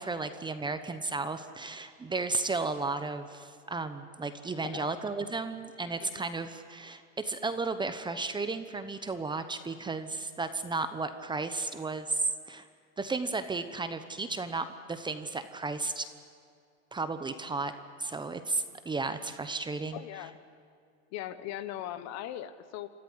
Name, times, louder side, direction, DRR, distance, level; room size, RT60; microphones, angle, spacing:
voice 1, 0.0-12.7 13.0-16.1 16.9-17.7 18.0-20.0, right 3 dB, 10° right, 10 dB, 0.9 m, -34 dB
voice 2, 6.0-6.3 19.9-20.4 21.1-22.9, left 12 dB, 45° left, 13 dB, 1.1 m, -39 dB
28.0 x 14.5 x 9.8 m, 2.3 s
supercardioid pair, 125°, 39 cm